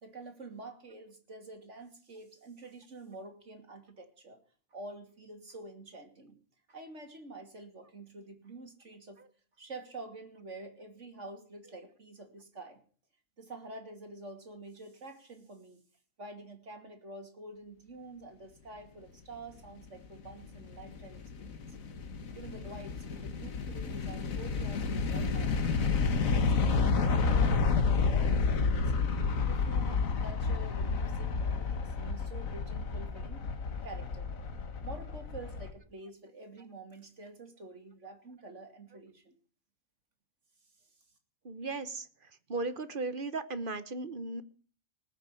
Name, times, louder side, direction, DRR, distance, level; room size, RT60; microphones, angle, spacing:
voice 1, 0.0-4.4 4.7-6.4 6.7-9.2 9.6-12.8 13.4-15.8 16.2-21.6 22.3-25.8 26.3-28.8 29.5-34.3 34.8-39.4, right 2 dB, 55° right, 6 dB, 3.0 m, -48 dB
sound 1, 20.2-35.7, left 4 dB, 70° left, 1.8 m, -30 dB
voice 2, 41.4-42.0 42.5-44.4, right 3 dB, 40° right, 13 dB, 1.2 m, -36 dB
20.0 x 6.8 x 8.4 m, 0.42 s
omnidirectional pair, 1.5 m